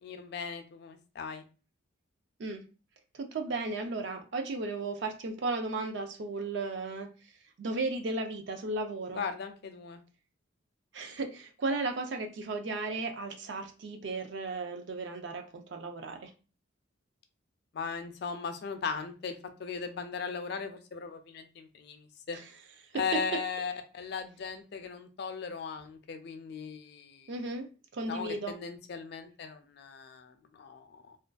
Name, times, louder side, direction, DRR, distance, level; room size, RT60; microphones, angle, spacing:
voice 1, 0.0-1.4 9.1-10.0 17.7-22.4 23.0-27.3 28.1-31.2, left 5 dB, 50° left, 8 dB, 0.3 m, -38 dB
voice 2, 3.1-7.1 7.6-9.2 10.9-16.3 22.3-22.5 22.9-23.4 27.3-28.6, right 3 dB, 60° right, 6 dB, 0.4 m, -35 dB
2.4 x 2.2 x 2.3 m, 0.34 s
head